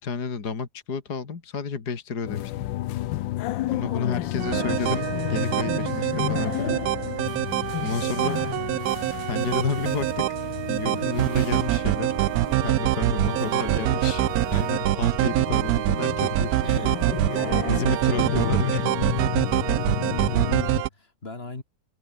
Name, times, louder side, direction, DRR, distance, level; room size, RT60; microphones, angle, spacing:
voice 1, 0.0-2.7 3.7-6.8 7.8-8.4 9.2-10.2 10.7-12.1 12.6-14.2 14.5-16.9 17.6-18.9, left 5 dB, 55° left, 2.8 m, -31 dB
sound 1, 2.3-20.8, left 15 dB, 80° left, 1.3 m, -32 dB
voice 2, 3.8-4.8 7.8-8.2 13.2-14.1 16.6-17.0 17.3-17.5 20.0-21.6, left 3 dB, 30° left, 3.0 m, -41 dB
sound 2, 4.4-20.9, right 15 dB, 80° right, 0.8 m, -25 dB
omnidirectional pair, 2.1 m